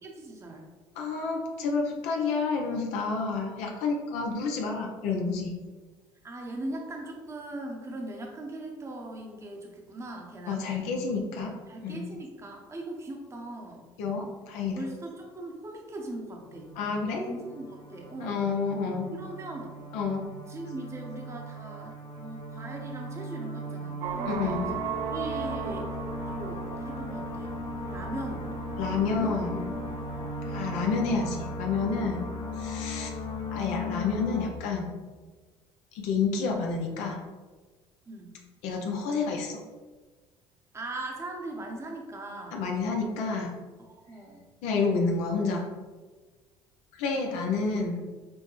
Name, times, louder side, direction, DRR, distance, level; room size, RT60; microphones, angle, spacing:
voice 1, 0.0-0.7 4.3-4.5 6.2-10.9 11.7-13.9 14.7-16.7 17.3-18.5 19.1-19.8 20.5-25.9 26.2-27.6 27.9-28.5 29.1-29.5 38.1-38.4 40.7-42.6 43.8-44.4, right 1 dB, 25° right, 1 dB, 0.7 m, -40 dB
voice 2, 1.0-5.5 10.5-11.6 11.8-12.0 14.0-14.9 16.8-17.3 18.2-19.1 19.9-20.3 24.3-24.7 28.8-29.6 30.5-32.3 32.6-33.1 33.5-34.9 35.9-37.2 38.6-39.6 42.5-43.6 44.6-45.7 46.9-48.0, left 4 dB, 85° left, 1 dB, 0.6 m, -29 dB
sound 1, 16.4-34.5, left 1 dB, 40° left, 0.7 m, -37 dB
sound 2, 24.0-30.5, right 7 dB, 75° right, 0.4 m, -38 dB
6.1 x 2.1 x 3.1 m, 1.3 s
supercardioid pair, 85°, 12 cm